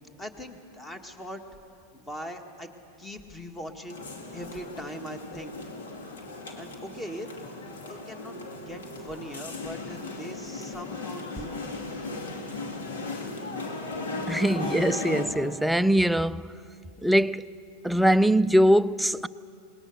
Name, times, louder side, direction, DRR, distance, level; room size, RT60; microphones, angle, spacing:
voice 1, 0.2-1.4 1.9-2.7 3.0-4.0 4.3-5.5 6.2-6.3 6.5-7.4 7.9-8.4 8.7-11.6, equal, 15° left, 1.8 m, -40 dB
sound 1, 3.9-15.3, left 2 dB, 90° left, 2.6 m, -37 dB
voice 2, 14.3-16.5 17.0-17.5 17.8-19.3, equal, ahead, 0.4 m, -22 dB
21.0 x 19.5 x 6.6 m
hypercardioid pair, 115°, 0 cm